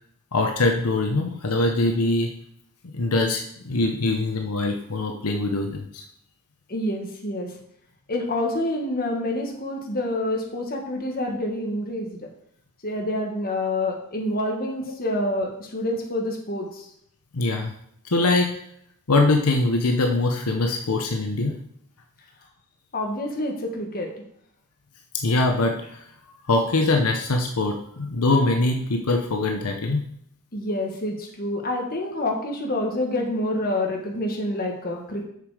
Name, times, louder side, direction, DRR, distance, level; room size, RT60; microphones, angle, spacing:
voice 1, 0.3-2.3 2.9-6.0 17.3-17.7 18.1-18.6 19.1-21.6 25.1-26.0 26.5-30.0, left 2 dB, 80° left, 3 dB, 0.9 m, -23 dB
voice 2, 6.7-7.5 8.1-12.2 12.8-16.8 22.9-24.1 30.5-35.2, left 1 dB, 40° left, 1 dB, 1.6 m, -27 dB
6.8 x 6.7 x 4.9 m, 0.71 s
head